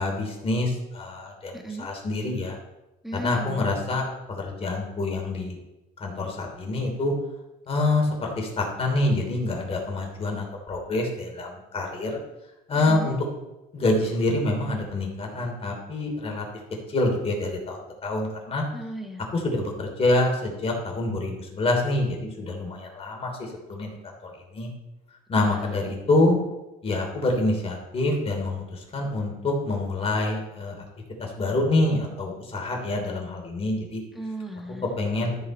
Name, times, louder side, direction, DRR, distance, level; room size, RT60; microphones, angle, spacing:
voice 1, 0.0-1.5 1.8-2.6 3.1-5.6 6.0-7.1 7.7-12.2 12.7-13.2 13.7-16.4 16.9-18.6 19.3-23.9 24.2-24.7 25.3-26.4 26.8-30.8 31.2-34.0 35.0-35.4, left 2 dB, 35° left, 1 dB, 3.1 m, -26 dB
voice 2, 1.5-1.9 3.0-3.7 12.9-13.2 18.7-19.2 25.3-26.0 34.1-34.9, right 1 dB, ahead, 3 dB, 1.4 m, -36 dB
13.5 x 5.6 x 4.4 m, 0.97 s
cardioid pair, 110°, 17 cm